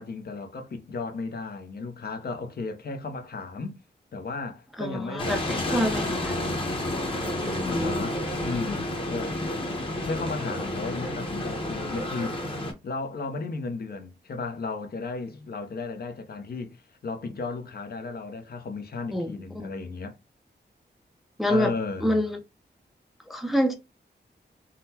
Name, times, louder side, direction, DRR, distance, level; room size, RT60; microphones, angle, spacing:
voice 1, 0.0-3.8 4.1-6.0 7.7-8.2 8.4-9.4 9.9-12.6 12.8-20.2 21.5-22.2, left 4 dB, 55° left, 0.7 m, -34 dB
voice 2, 4.8-6.3 7.4-8.0 19.1-19.7 21.4-21.7 22.0-22.4 23.3-23.7, equal, ahead, 0.4 m, -27 dB
sound 1, 5.2-12.7, left 1 dB, 30° left, 0.9 m, -30 dB
3.8 x 2.1 x 2.7 m
wide cardioid pair, 140°, 19 cm